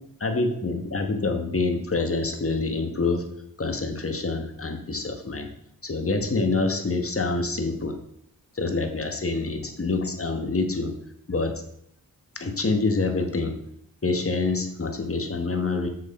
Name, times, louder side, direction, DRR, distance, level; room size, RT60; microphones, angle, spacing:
voice 1, 0.2-3.3 3.6-5.5 5.8-8.0 8.5-11.0 11.3-11.6 12.3-13.6 14.0-15.9, left 3 dB, 35° left, 5 dB, 1.3 m, -26 dB
7.3 x 6.3 x 4.2 m, 0.73 s
wide cardioid pair, 75°, 37 cm